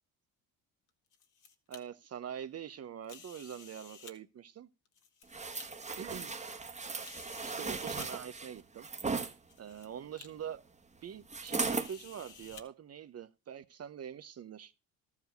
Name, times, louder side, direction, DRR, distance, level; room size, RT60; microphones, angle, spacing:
sound 1, 0.9-1.8 3.0-4.2 4.9-5.7 6.3-6.4 7.0-8.1 9.0-9.1 9.5-9.9 10.2-10.3 11.6-12.6, left 6 dB, 50° left, 1.8 m, -53 dB
voice 1, 1.7-4.7 6.0-6.4 7.4-8.9 9.6-10.6 11.0-14.7, right 8 dB, 40° right, 0.8 m, -44 dB
sound 2, 5.3-9.3 11.3-11.9 12.5-12.6, right 4 dB, 20° right, 1.3 m, -37 dB
13.5 x 4.9 x 6.5 m
cardioid pair, 95°, 38 cm